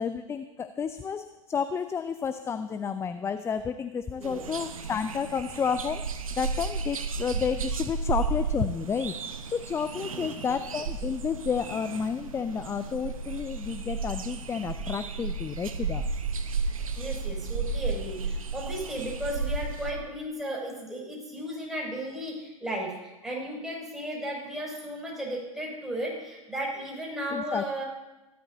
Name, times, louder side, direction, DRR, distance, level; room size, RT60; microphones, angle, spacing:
voice 1, 0.0-9.2 9.5-16.1 27.3-27.7, left 6 dB, 15° left, 11 dB, 0.5 m, -31 dB
sound 1, 4.2-19.9, right 4 dB, 80° right, 1.1 m, -33 dB
voice 2, 17.0-27.8, right 1 dB, ahead, -4 dB, 6.6 m, -35 dB
27.5 x 12.0 x 2.8 m, 1.0 s
hypercardioid pair, 100°, 17 cm